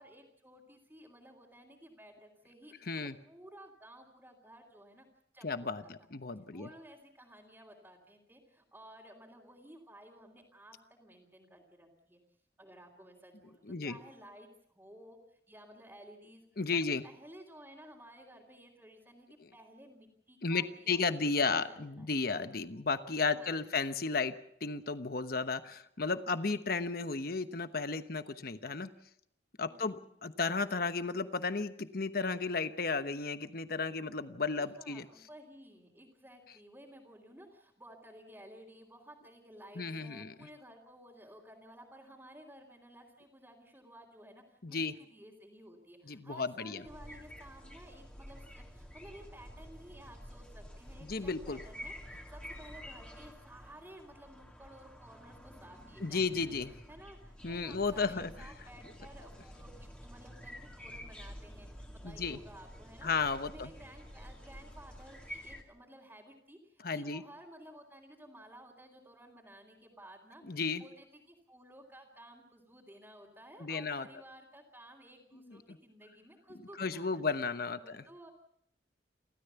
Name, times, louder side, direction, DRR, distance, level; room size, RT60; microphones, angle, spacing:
voice 1, 0.0-5.0 5.3-5.9 6.5-12.2 12.6-16.5 16.7-22.1 23.3-23.6 29.7-30.1 34.5-56.6 56.9-63.1 63.4-77.2 77.7-78.3, right 1 dB, 10° right, -4 dB, 3.3 m, -55 dB
voice 2, 5.4-6.7 13.7-14.0 16.6-17.0 20.4-28.9 29.6-35.0 39.8-40.3 44.6-44.9 46.1-46.8 51.0-51.6 56.0-56.7 57.4-58.3 62.0-62.4 63.0-63.7 66.8-67.2 70.5-70.8 73.6-74.1 75.5-75.6 76.8-78.0, left 4 dB, 55° left, 11 dB, 1.0 m, -34 dB
sound 1, 46.8-65.6, equal, 5° left, 2.8 m, -50 dB
29.5 x 13.5 x 7.0 m, 0.72 s
head